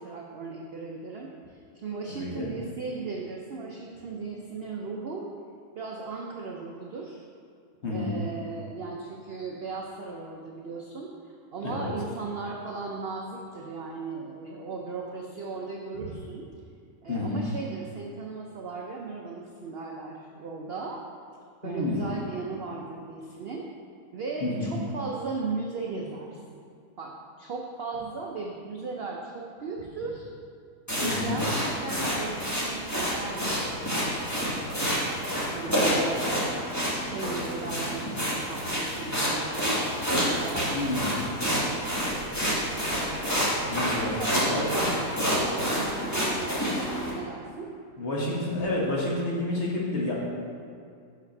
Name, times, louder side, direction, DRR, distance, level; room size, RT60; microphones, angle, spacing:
voice 1, 0.0-5.3 5.8-7.2 7.8-16.5 17.0-21.0 21.6-23.7 24.1-26.6 27.0-30.3 31.0-34.7 35.5-36.3 36.9-39.8 40.4-42.5 44.1-45.1 45.5-47.7, right 4 dB, 70° right, -1 dB, 0.5 m, -37 dB
voice 2, 2.1-2.5 7.8-8.2 11.6-11.9 17.1-17.5 21.6-22.0 24.4-24.8 31.0-31.4 40.7-41.1 43.7-44.1 44.4-44.7 48.0-50.2, left 2 dB, 45° left, -4 dB, 1.5 m, -29 dB
sound 1, 30.9-47.1, equal, 10° left, 1.3 m, -28 dB
6.1 x 5.1 x 5.3 m, 2.3 s
omnidirectional pair, 1.7 m